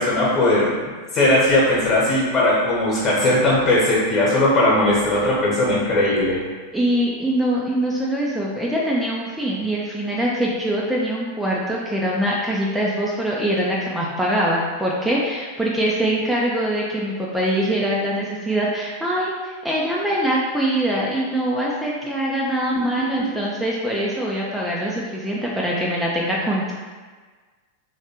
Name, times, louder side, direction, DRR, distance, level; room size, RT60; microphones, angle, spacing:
voice 1, 0.0-6.4, left 1 dB, 35° left, -6 dB, 1.1 m, -18 dB
voice 2, 6.7-26.7, right 1 dB, 5° right, -5 dB, 0.4 m, -23 dB
3.2 x 3.1 x 2.9 m, 1.4 s
figure-of-eight pair, 90°, 0 cm